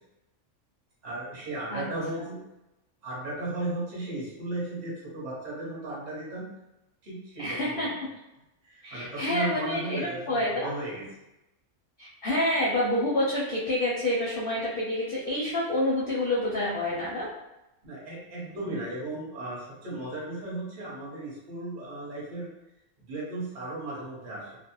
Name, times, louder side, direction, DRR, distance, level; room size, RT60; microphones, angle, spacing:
voice 1, 1.0-2.4 3.0-6.5 7.0-7.9 8.6-11.1 17.8-22.5 23.1-24.6, right 2 dB, 45° right, -6 dB, 1.0 m, -35 dB
voice 2, 7.4-7.9 8.8-10.7 12.0-17.3, left 1 dB, 55° left, -7 dB, 0.6 m, -28 dB
2.4 x 2.0 x 2.8 m, 0.94 s
omnidirectional pair, 1.4 m